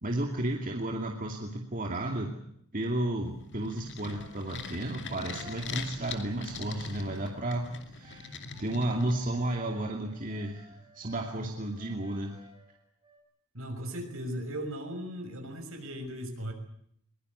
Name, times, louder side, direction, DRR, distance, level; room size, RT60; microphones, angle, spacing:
voice 1, 0.0-2.3 2.7-8.3 8.6-12.4, right 1 dB, 35° right, 2 dB, 2.6 m, -33 dB
sound 1, 3.2-9.6, left 5 dB, 55° left, 2.5 m, -42 dB
sound 2, 4.0-13.2, right 1 dB, 20° right, 6.2 m, -56 dB
voice 2, 13.5-16.5, equal, 65° right, 5 dB, 6.2 m, -37 dB
22.5 x 22.0 x 8.1 m, 0.68 s
head